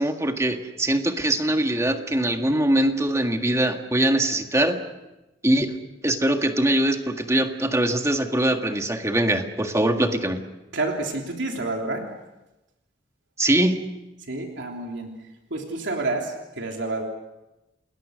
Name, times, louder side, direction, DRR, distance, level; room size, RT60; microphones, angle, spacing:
voice 1, 0.0-4.8 5.4-5.7 6.0-10.4 13.4-13.8, right 1 dB, 15° right, 5 dB, 1.8 m, -22 dB
voice 2, 10.7-12.0 14.3-15.1 15.5-17.0, right 2 dB, 75° right, 1 dB, 3.3 m, -29 dB
29.5 x 21.0 x 6.5 m, 0.98 s
head